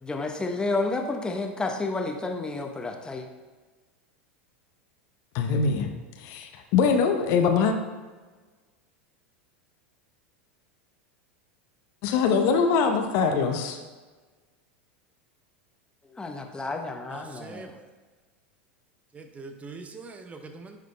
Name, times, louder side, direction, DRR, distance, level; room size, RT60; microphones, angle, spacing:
voice 1, 0.0-3.3 16.1-17.7, left 3 dB, 15° left, 0.9 m, -30 dB
voice 2, 5.3-5.9 6.2-7.7 12.0-13.8, left 5 dB, 55° left, 0.8 m, -23 dB
voice 3, 17.1-17.7 19.1-20.8, right 3 dB, 20° right, 0.7 m, -42 dB
10.5 x 3.9 x 3.3 m
hypercardioid pair, 90°, 6 cm